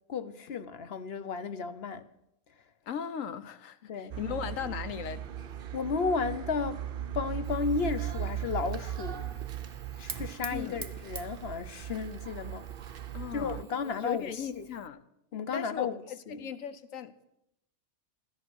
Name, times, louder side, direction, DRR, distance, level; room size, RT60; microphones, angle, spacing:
voice 1, 0.1-2.1 3.8-4.4 5.7-6.8 7.1-9.3 10.0-12.6 13.3-14.7 15.3-16.0 16.3-16.5, left 5 dB, 50° left, 0.9 m, -33 dB
voice 2, 2.9-5.2 10.5-10.9 13.1-15.0 15.5-17.1, left 8 dB, 70° left, 1.2 m, -38 dB
sound 1, 4.1-13.6, right 11 dB, 50° right, 0.7 m, -38 dB
Fire, 7.4-14.9, right 3 dB, 25° right, 0.5 m, -49 dB
16.0 x 13.5 x 6.3 m
omnidirectional pair, 1.5 m